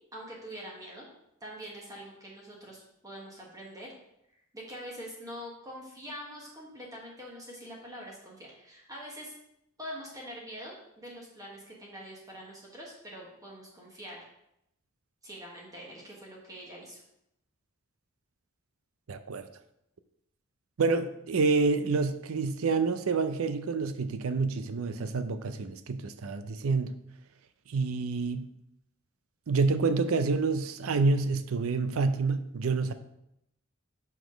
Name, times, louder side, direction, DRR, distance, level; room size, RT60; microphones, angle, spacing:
voice 1, 0.1-1.0 1.4-3.9 4.5-9.3 9.8-14.2 15.2-17.0, equal, 15° right, 1.4 m, -44 dB
voice 2, 19.1-19.5 20.8-26.9 27.7-28.5 29.5-32.9, right 4 dB, 75° right, 0.5 m, -28 dB
5.9 x 5.0 x 5.1 m
head